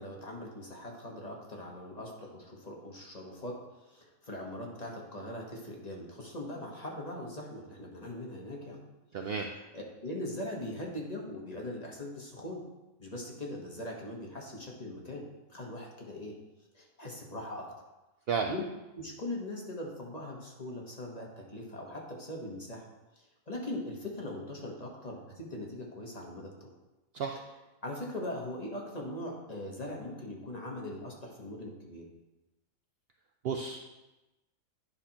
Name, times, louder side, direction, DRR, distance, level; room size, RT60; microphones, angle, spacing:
voice 1, 0.0-8.8 9.7-12.6 13.0-15.2 15.5-16.4 16.7-17.7 18.5-18.7 18.9-22.9 23.2-26.7 27.8-32.1, left 1 dB, 30° left, -1 dB, 1.1 m, -41 dB
voice 2, 9.1-9.5 18.3-18.5 27.1-27.4 33.4-33.9, right 5 dB, 60° right, 3 dB, 0.6 m, -32 dB
9.8 x 5.8 x 2.8 m, 1.0 s
omnidirectional pair, 1.4 m